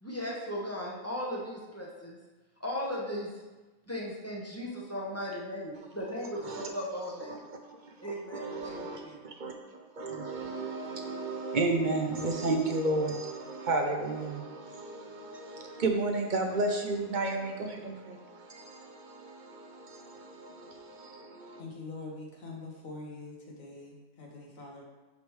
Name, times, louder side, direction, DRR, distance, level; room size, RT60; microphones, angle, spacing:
voice 1, 0.0-2.2 2.6-3.3 3.9-7.5 8.0-9.2, equal, 15° left, -4 dB, 0.8 m, -37 dB
voice 2, 7.3-21.6, right 2 dB, 55° right, 3 dB, 0.6 m, -33 dB
voice 3, 21.6-24.8, left 3 dB, 75° left, -1 dB, 1.5 m, -44 dB
10.5 x 3.5 x 3.1 m, 1.2 s
omnidirectional pair, 1.4 m